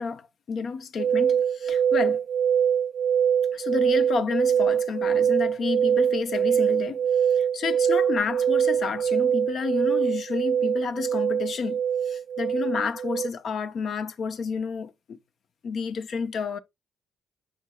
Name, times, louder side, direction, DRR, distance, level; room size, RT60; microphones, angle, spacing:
voice 1, 0.0-2.2 3.5-15.2 15.6-16.6, left 5 dB, 60° left, 0.8 m, -30 dB
sound 1, 1.0-13.3, right 8 dB, 70° right, 0.3 m, -23 dB
7.7 x 6.1 x 2.3 m
cardioid pair, 90°, 0 cm